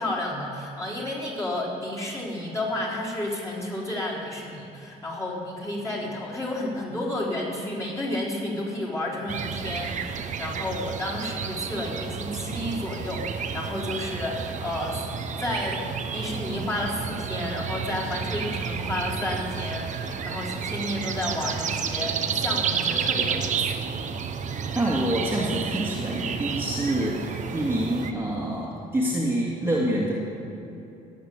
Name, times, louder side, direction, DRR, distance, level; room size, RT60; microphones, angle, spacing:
voice 1, 0.0-15.0 15.4-15.8 16.1-23.8, left 1 dB, 20° left, -5 dB, 4.3 m, -31 dB
sound 1, 9.3-28.1, right 6 dB, 45° right, 0.9 m, -31 dB
voice 2, 24.7-30.1, right 1 dB, 15° right, -5 dB, 2.2 m, -26 dB
17.5 x 8.7 x 7.3 m, 2.8 s
cardioid pair, 110°, 17 cm